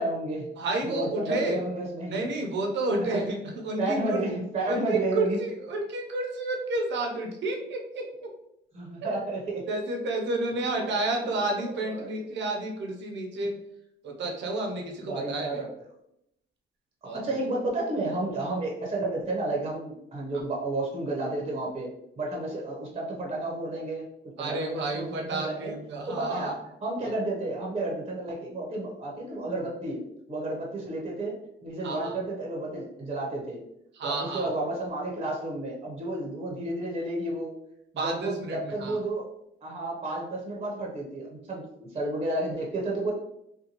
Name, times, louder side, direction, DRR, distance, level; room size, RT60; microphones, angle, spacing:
voice 1, 0.0-0.5 0.8-2.3 3.1-3.2 3.8-5.4 8.7-9.6 10.5-10.6 11.2-12.4 15.0-15.7 17.0-24.1 24.4-25.7 26.1-30.0 30.3-31.3 31.6-33.6 34.0-37.5 37.9-39.3 39.6-43.1, right 2 dB, 30° right, -2 dB, 0.7 m, -31 dB
voice 2, 0.6-1.6 2.1-3.4 3.6-4.2 4.7-8.3 9.0-9.2 9.7-13.5 14.0-15.6 17.0-17.2 24.4-26.5 31.8-32.1 33.9-34.5 38.0-39.0, right 2 dB, 65° right, 1 dB, 0.6 m, -30 dB
2.6 x 2.2 x 2.9 m, 0.80 s
cardioid pair, 90°, 20 cm